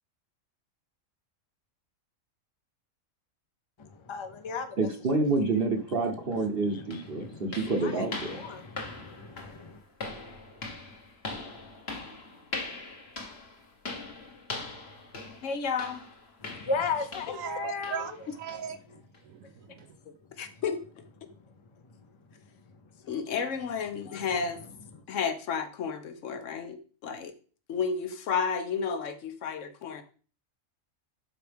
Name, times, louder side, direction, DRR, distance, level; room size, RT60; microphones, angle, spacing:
voice 1, 3.8-4.8 5.2-5.5 6.7-9.8 16.4-18.2 24.1-24.2, left 4 dB, 25° left, 0.7 m, -36 dB
voice 2, 4.8-8.4, right 3 dB, 45° right, 1.1 m, -28 dB
sound 1, 6.3-6.4 6.9-17.5 17.8-18.1 18.5-18.7 19.1-19.2 19.8-19.9, left 3 dB, 50° left, 1.5 m, -41 dB
voice 3, 15.4-16.0 20.4-20.8 23.1-24.6 25.1-27.3 27.7-30.0, left 6 dB, 70° left, 1.2 m, -32 dB
voice 4, 17.3-20.0, right 8 dB, 80° right, 1.2 m, -39 dB
11.5 x 4.6 x 3.5 m
omnidirectional pair, 1.4 m